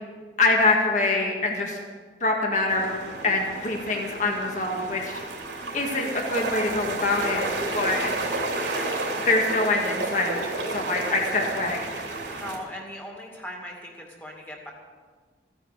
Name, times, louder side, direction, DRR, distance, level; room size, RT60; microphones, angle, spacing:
voice 1, 0.4-1.8 2.2-3.0 3.2-5.2 5.7-7.5 7.7-8.4 9.2-11.9, left 2 dB, 45° left, 0 dB, 1.9 m, -25 dB
sound 1, 2.7-12.6, right 2 dB, 85° right, 3.1 m, -31 dB
voice 2, 12.4-14.7, equal, 10° left, -1 dB, 2.3 m, -39 dB
15.0 x 9.8 x 6.4 m, 1.5 s
head